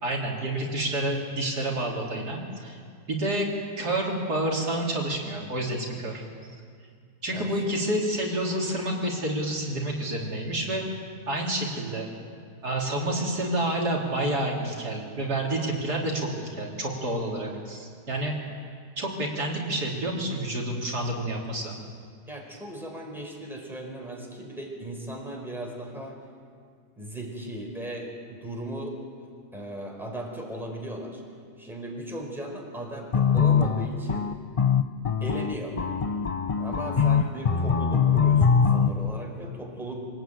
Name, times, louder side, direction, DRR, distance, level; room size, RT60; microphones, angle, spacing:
voice 1, 0.0-2.8 3.1-3.5 3.8-6.2 7.2-10.9 11.3-12.1 12.6-18.3 19.0-21.7 36.9-37.3, right 1 dB, 70° right, -2 dB, 3.6 m, -29 dB
voice 2, 22.3-26.2 27.0-29.0 29.5-31.2 31.6-34.3 35.2-35.8 36.6-40.1, right 1 dB, ahead, -1 dB, 4.5 m, -37 dB
sound 1, 33.1-38.9, left 6 dB, 65° left, 0.3 m, -22 dB
25.5 x 18.5 x 9.2 m, 2.1 s
omnidirectional pair, 1.8 m